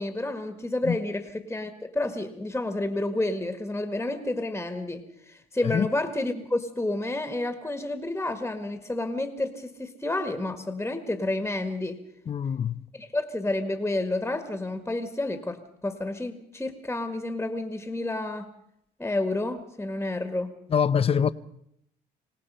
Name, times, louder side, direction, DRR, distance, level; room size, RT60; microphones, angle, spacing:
voice 1, 0.0-12.0 12.9-18.5 19.0-20.5, left 2 dB, 10° left, 1.9 m, -30 dB
voice 2, 12.3-12.8 20.7-21.3, left 7 dB, 35° left, 0.8 m, -24 dB
26.5 x 18.0 x 5.6 m
cardioid pair, 110°, 17 cm